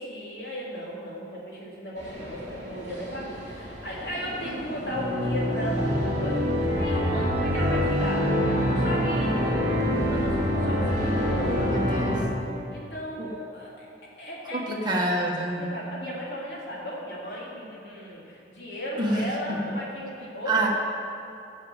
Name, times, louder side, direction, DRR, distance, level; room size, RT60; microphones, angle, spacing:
voice 1, 0.0-13.8 14.2-14.8 15.4-20.7, equal, 60° left, -5 dB, 3.2 m, -36 dB
sound 1, 2.0-12.2, equal, 40° right, 3.2 m, -26 dB
voice 2, 11.4-12.2 13.2-13.3 14.5-15.7 19.0-19.7 20.5-20.7, right 1 dB, 25° right, -2 dB, 1.5 m, -28 dB
12.5 x 6.4 x 7.9 m, 2.8 s
head